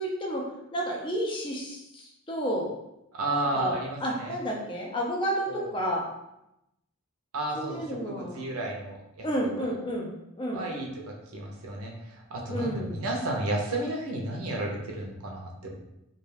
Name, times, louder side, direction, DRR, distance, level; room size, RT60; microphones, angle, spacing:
voice 1, 0.0-2.7 3.3-6.1 7.5-8.5 9.2-10.6 12.5-13.0, equal, 25° left, -2 dB, 0.4 m, -31 dB
voice 2, 3.1-4.4 5.5-5.7 7.3-9.2 10.5-15.8, right 2 dB, 75° right, -1 dB, 0.6 m, -33 dB
2.3 x 2.3 x 3.2 m, 0.87 s
head